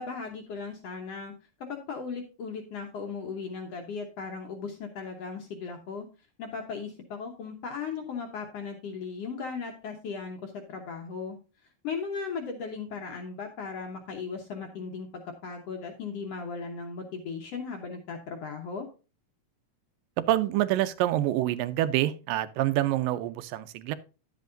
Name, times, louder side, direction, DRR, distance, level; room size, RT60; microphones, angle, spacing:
voice 1, 0.0-1.3 1.7-6.1 6.4-11.4 11.8-18.9, left 5 dB, 65° left, 3 dB, 1.7 m, -37 dB
voice 2, 20.3-24.0, right 14 dB, 85° right, 13 dB, 2.3 m, -26 dB
10.5 x 8.2 x 2.6 m, 0.32 s
omnidirectional pair, 3.9 m